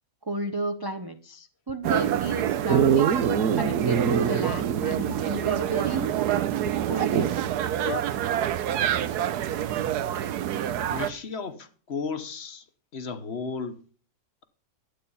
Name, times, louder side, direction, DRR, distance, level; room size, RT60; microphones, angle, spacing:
voice 1, 0.2-3.1 3.5-6.1 6.9-7.3, right 2 dB, 35° right, 0.4 m, -32 dB
sound 1, 1.7-1.8 2.3-2.4 3.3-3.4 3.8-3.9 4.3-4.4 6.0-6.7 7.2-7.3 7.8-8.1 8.9-9.0 9.2-9.3, left 10 dB, 85° left, 1.4 m, -37 dB
sound 2, 1.8-11.1, right 11 dB, 85° right, 1.3 m, -27 dB
Dog, 2.7-5.4 5.7-5.8 6.9-7.5 9.6-9.7, right 7 dB, 65° right, 1.1 m, -25 dB
voice 2, 10.9-12.6 12.9-13.8, left 5 dB, 45° left, 1.2 m, -34 dB
12.0 x 8.4 x 5.6 m
omnidirectional pair, 1.7 m